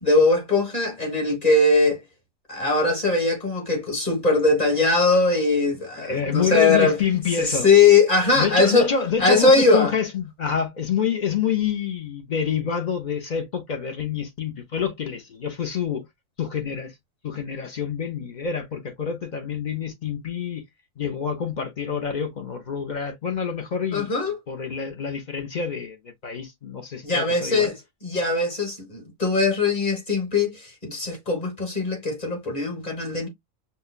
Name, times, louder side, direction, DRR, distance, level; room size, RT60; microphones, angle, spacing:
voice 1, 0.0-2.0 2.5-7.0 7.4-8.9 9.2-9.9 23.9-24.3 27.0-33.3, left 3 dB, 30° left, 1.4 m, -20 dB
voice 2, 6.0-7.7 8.4-16.0 16.4-16.9 17.2-20.6 21.0-24.1 24.5-27.7, left 7 dB, 50° left, 0.5 m, -27 dB
5.5 x 2.2 x 2.3 m
omnidirectional pair, 1.4 m